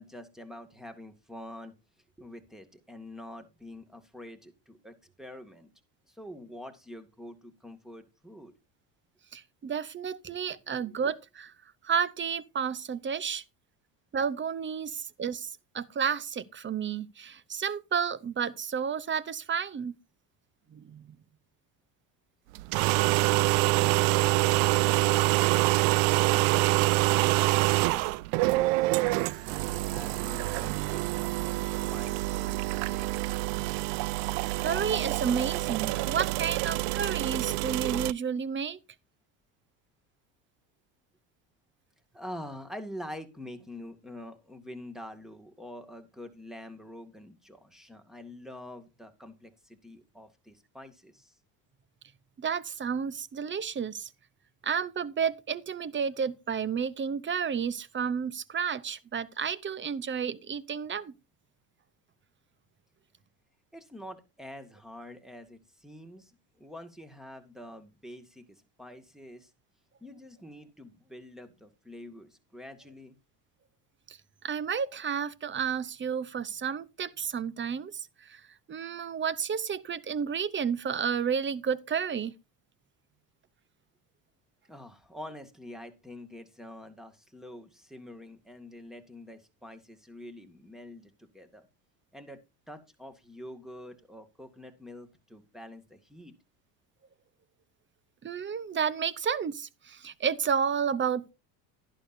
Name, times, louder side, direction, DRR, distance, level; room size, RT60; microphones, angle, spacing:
voice 1, 0.0-1.7 2.2-5.7 6.1-8.5 10.4-10.6 22.9-23.5 23.9-26.6 27.1-28.1 28.4-33.4 36.0-36.1 36.4-36.9 42.1-51.4 63.7-69.5 70.0-73.2 84.7-91.7 92.1-92.4 92.7-96.3, left 1 dB, ahead, 2.0 m, -46 dB
voice 2, 9.3-11.5 11.8-13.4 14.1-19.9 20.7-21.1 34.6-38.8 52.4-54.1 54.6-61.1 74.1-74.2 74.4-78.4 78.7-82.3 98.2-101.3, right 7 dB, 25° right, 0.8 m, -31 dB
sound 1, 22.6-38.1, right 20 dB, 70° right, 0.5 m, -26 dB
11.5 x 11.0 x 2.7 m
supercardioid pair, 90°, 47 cm